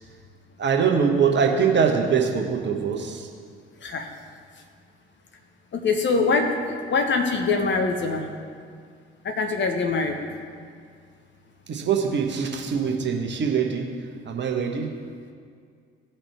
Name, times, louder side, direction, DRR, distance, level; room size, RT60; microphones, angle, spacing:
voice 1, 0.6-3.3 11.7-13.8 14.2-14.9, right 6 dB, 40° right, 2 dB, 1.3 m, -23 dB
voice 2, 5.7-8.3 9.2-10.2, left 4 dB, 40° left, 3 dB, 1.2 m, -23 dB
17.0 x 5.8 x 3.5 m, 2.1 s
figure-of-eight pair, 45°, 29 cm